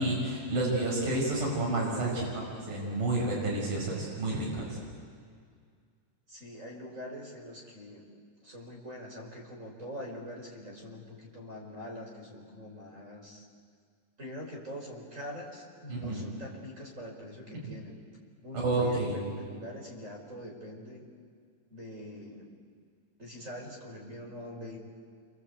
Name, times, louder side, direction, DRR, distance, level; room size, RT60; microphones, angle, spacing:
voice 1, 0.0-4.8 15.9-16.2 18.6-19.2, right 2 dB, 80° right, -4 dB, 7.7 m, -30 dB
voice 2, 6.3-8.1 8.4-13.4 14.2-18.1 18.4-21.1 21.7-22.5 23.2-24.8, left 1 dB, 20° right, 0 dB, 4.7 m, -44 dB
28.0 x 25.5 x 8.3 m, 2.1 s
omnidirectional pair, 3.9 m